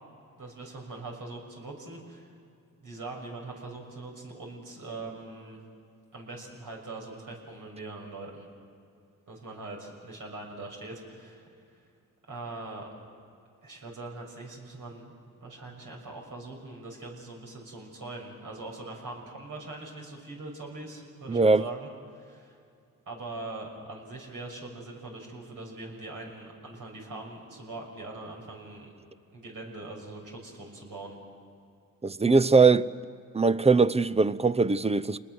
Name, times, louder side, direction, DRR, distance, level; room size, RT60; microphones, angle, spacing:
voice 1, 0.4-2.3 2.8-5.6 6.1-8.5 9.3-11.8 12.3-12.9 13.6-15.1 15.4-22.6 23.1-28.9 29.3-31.2, right 2 dB, 70° right, 6.4 m, -42 dB
voice 2, 21.3-21.6 32.0-32.9 33.3-35.2, right 4 dB, 20° right, 0.7 m, -21 dB
28.5 x 20.5 x 6.3 m
cardioid pair, 65°, 33 cm